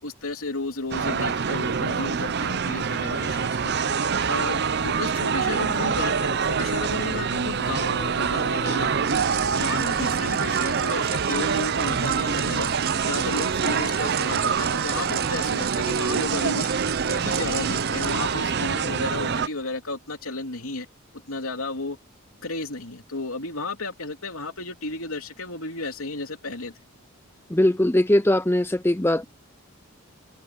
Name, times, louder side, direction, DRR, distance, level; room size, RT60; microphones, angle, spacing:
voice 1, 0.0-3.7 4.3-9.2 9.6-12.7 13.1-16.7 17.1-20.9 21.3-22.0 22.4-26.7, left 2 dB, 70° left, 3.2 m, -33 dB
sound 1, 0.9-19.5, right 6 dB, 50° right, 0.6 m, -25 dB
sound 2, 9.1-18.3, right 13 dB, 70° right, 4.3 m, -35 dB
voice 2, 27.5-29.2, left 1 dB, 10° left, 0.6 m, -20 dB
head